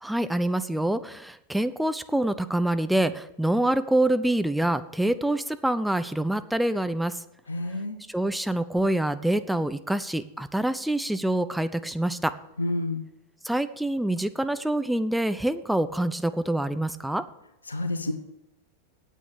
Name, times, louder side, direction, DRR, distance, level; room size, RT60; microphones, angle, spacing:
voice 1, 0.0-7.2 8.1-12.3 13.4-17.2, right 1 dB, 5° right, 10 dB, 0.6 m, -26 dB
voice 2, 7.5-8.0 12.6-13.1 17.7-18.1, left 2 dB, 75° left, 9 dB, 1.0 m, -29 dB
8.6 x 8.4 x 7.3 m, 0.84 s
figure-of-eight pair, 90°, 0 cm